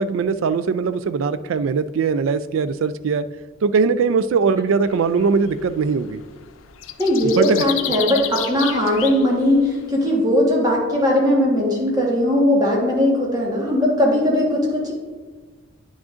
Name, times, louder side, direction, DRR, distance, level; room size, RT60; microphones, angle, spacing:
voice 1, 0.0-3.3 3.6-6.2 7.4-7.6, right 5 dB, 70° right, 14 dB, 0.3 m, -20 dB
sound 1, 4.9-9.8, left 11 dB, 70° left, 0.4 m, -31 dB
voice 2, 7.0-14.9, left 1 dB, 20° right, -3 dB, 1.3 m, -19 dB
9.5 x 6.1 x 2.5 m, 1.4 s
head